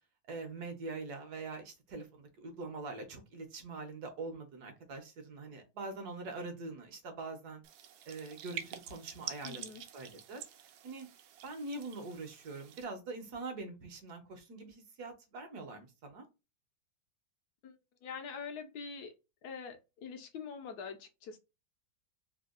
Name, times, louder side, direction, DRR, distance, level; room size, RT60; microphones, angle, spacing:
voice 1, 0.3-7.6 8.1-9.6 9.9-10.4 10.8-11.1 11.4-16.2, right 3 dB, 60° right, 1.3 m, -43 dB
sound 1, 7.6-12.8, right 10 dB, 85° right, 1.3 m, -47 dB
voice 2, 9.4-9.8 17.6-17.7 18.0-19.1 19.4-21.4, left 6 dB, 70° left, 1.0 m, -44 dB
3.5 x 2.3 x 2.3 m
omnidirectional pair, 2.1 m